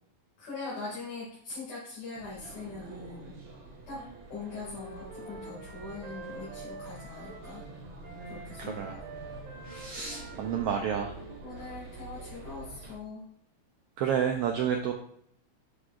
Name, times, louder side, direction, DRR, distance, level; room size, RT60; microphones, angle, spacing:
voice 1, 0.4-3.4 3.9-4.0 4.3-7.6 8.2-8.8 10.5-10.7 11.4-13.3, left 3 dB, 75° left, -8 dB, 3.7 m, -42 dB
sound 1, 2.1-12.9, right 3 dB, 50° right, 2.0 m, -46 dB
Wind instrument woodwind instrument, 4.1-7.7 8.0-11.8, right 2 dB, 65° right, 1.9 m, -48 dB
voice 2, 8.6-9.0 9.6-11.1 14.0-14.9, right 8 dB, 85° right, 4 dB, 1.3 m, -30 dB
9.4 x 5.9 x 2.5 m, 0.67 s
omnidirectional pair, 3.3 m